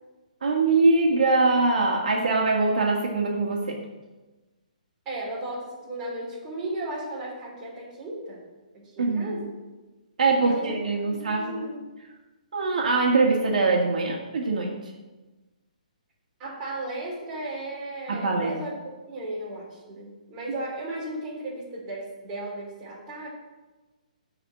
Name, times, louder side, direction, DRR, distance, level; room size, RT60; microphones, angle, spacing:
voice 1, 0.4-3.8 9.0-9.3 10.2-11.6 12.5-14.9 18.1-18.6, right 3 dB, 70° right, -1 dB, 1.9 m, -23 dB
voice 2, 5.1-8.4 8.7-9.5 10.4-10.7 11.1-11.8 16.4-23.3, right 2 dB, 15° right, -6 dB, 3.6 m, -35 dB
10.0 x 5.0 x 7.2 m, 1.2 s
hypercardioid pair, 165°, 4 cm